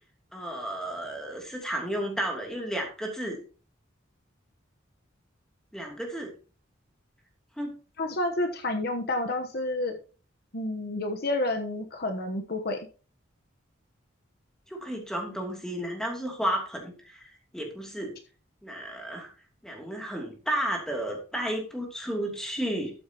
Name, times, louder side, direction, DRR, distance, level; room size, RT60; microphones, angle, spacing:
voice 1, 0.3-3.4 5.7-6.3 7.6-7.7 14.7-17.2 17.5-18.1 18.6-19.3 19.6-22.9, right 1 dB, 5° left, 1 dB, 2.7 m, -32 dB
voice 2, 8.0-10.0 10.5-12.9, left 2 dB, 50° left, 5 dB, 1.1 m, -29 dB
13.0 x 8.0 x 3.0 m, 0.36 s
head